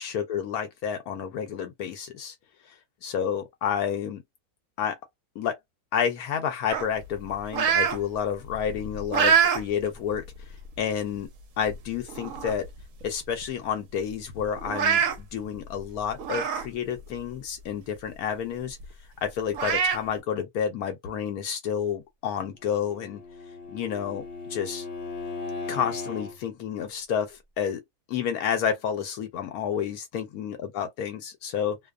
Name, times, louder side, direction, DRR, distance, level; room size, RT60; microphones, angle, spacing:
voice 1, 0.0-2.3 3.0-4.2 4.8-5.0 5.4-5.6 5.9-10.2 10.8-11.3 11.6-12.7 13.0-18.8 19.2-23.2 23.7-24.2 24.5-24.8 25.7-27.8 28.1-31.8, left 8 dB, 80° left, 1.1 m, -30 dB
sound 1, 6.7-8.0 8.4-9.6 10.1-10.3 11.2-11.3 11.7-11.8 12.1-12.7 13.0-13.1 13.4-13.5 14.6-15.2 16.2-16.7 17.1-17.2 18.8-18.9 19.5-20.0, right 7 dB, 70° right, 1.0 m, -24 dB
Bowed string instrument, 22.8-26.4, left 4 dB, 55° left, 0.9 m, -37 dB
2.6 x 2.1 x 2.3 m
omnidirectional pair, 1.6 m